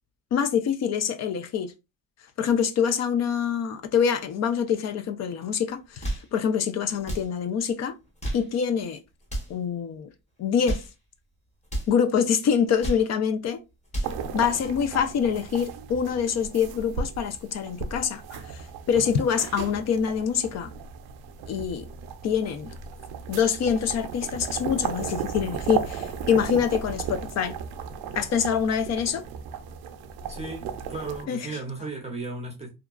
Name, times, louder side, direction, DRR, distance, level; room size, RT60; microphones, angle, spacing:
voice 1, 0.3-1.7 2.4-7.9 8.3-9.0 9.5-10.1 10.4-10.8 11.9-13.6 14.3-20.7 21.5-21.8 22.2-22.7 23.3-27.5 28.2-29.2 31.3-31.4, left 7 dB, 45° left, 0.4 m, -25 dB
sound 1, 5.8-6.3 7.0-7.3 8.0-8.5 9.2-9.6 10.4-10.9 11.6-11.9 12.6-13.1 13.7-14.2, right 1 dB, 20° left, 1.0 m, -32 dB
sound 2, 14.0-31.2, right 7 dB, 85° right, 0.5 m, -35 dB
voice 2, 30.3-32.7, right 3 dB, 20° right, 0.6 m, -35 dB
2.8 x 2.3 x 2.3 m
cardioid pair, 145°, 36 cm